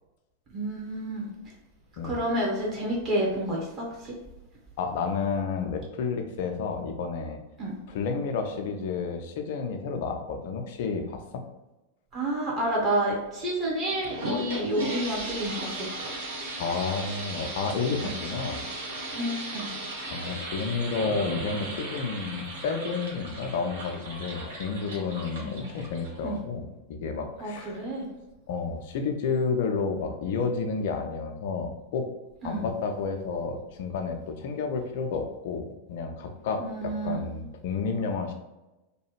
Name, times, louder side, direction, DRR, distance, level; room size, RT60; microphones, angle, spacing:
voice 1, 0.5-1.3 2.0-4.1 7.6-7.7 12.1-16.1 18.0-18.1 19.1-19.7 25.4-25.7 26.2-26.4 27.4-28.0 32.4-32.7 36.6-37.2, right 1 dB, 35° right, -4 dB, 1.0 m, -30 dB
voice 2, 4.8-7.4 7.9-11.4 16.6-18.6 20.1-27.8 28.5-32.1 32.4-38.3, left 5 dB, 55° left, 5 dB, 0.4 m, -31 dB
sound 1, 13.9-26.4, right 2 dB, 65° right, 0.7 m, -36 dB
2.8 x 2.3 x 3.1 m, 1.0 s
figure-of-eight pair, 90°, 0 cm